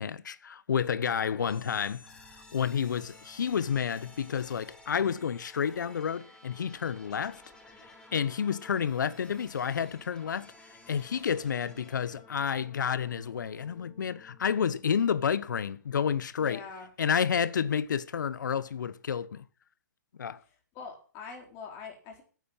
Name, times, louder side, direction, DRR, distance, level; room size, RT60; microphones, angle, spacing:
voice 1, 0.0-2.1 2.5-7.4 8.1-10.5 10.9-16.6 17.0-19.4 20.2-20.4, left 7 dB, 75° left, 0.9 m, -30 dB
sound 1, 1.3-15.2, left 2 dB, 5° left, 2.4 m, -55 dB
voice 2, 16.4-16.9 20.7-22.2, left 5 dB, 30° left, 4.2 m, -43 dB
9.3 x 8.5 x 8.9 m
hypercardioid pair, 145°, 10 cm